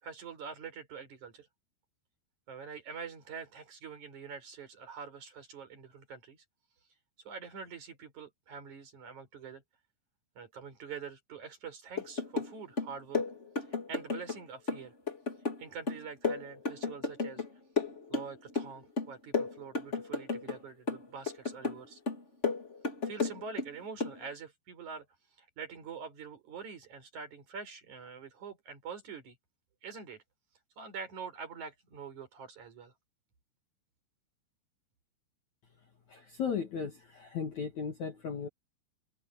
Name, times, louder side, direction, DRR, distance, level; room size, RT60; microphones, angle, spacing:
voice 1, 0.0-1.5 2.5-6.4 7.2-9.6 10.4-13.2 13.9-14.9 15.6-17.4 18.1-22.0 23.0-25.1 25.4-29.4 29.8-30.2 30.8-32.9, right 6 dB, 40° right, 6.1 m, -45 dB
sound 1, 12.0-12.5 12.8-14.4 14.7-17.5 17.8-18.7 19.0-20.6 20.9-21.8 22.1-23.7 24.0-24.2, left 3 dB, 35° left, 1.1 m, -33 dB
voice 2, 36.1-38.5, left 6 dB, 60° left, 1.9 m, -36 dB
omnidirectional pair, 5.7 m